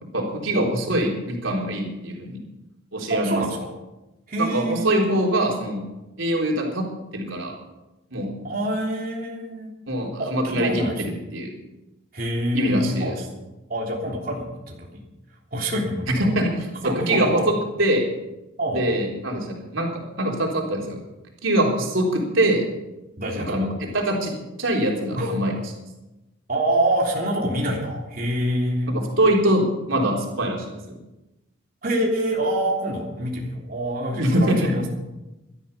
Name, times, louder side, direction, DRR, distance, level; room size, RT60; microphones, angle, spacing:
voice 1, 0.1-2.4 2.9-3.4 4.4-5.8 6.2-6.9 7.1-7.5 8.1-8.3 9.9-11.5 12.5-13.2 16.4-18.1 18.7-21.0 21.4-22.6 23.5-23.7 23.9-24.3 24.6-25.5 28.9-31.0 34.2-34.7, right 1 dB, 90° right, -1 dB, 3.9 m, -23 dB
voice 2, 3.1-3.7 4.3-5.1 8.4-9.7 10.2-11.0 12.1-13.1 13.7-15.0 15.5-16.3 16.8-17.4 18.6-18.9 23.2-23.7 25.2-25.3 26.5-28.9 31.8-34.9, right 1 dB, 50° right, -3 dB, 3.3 m, -26 dB
18.5 x 12.5 x 5.6 m, 1.0 s
head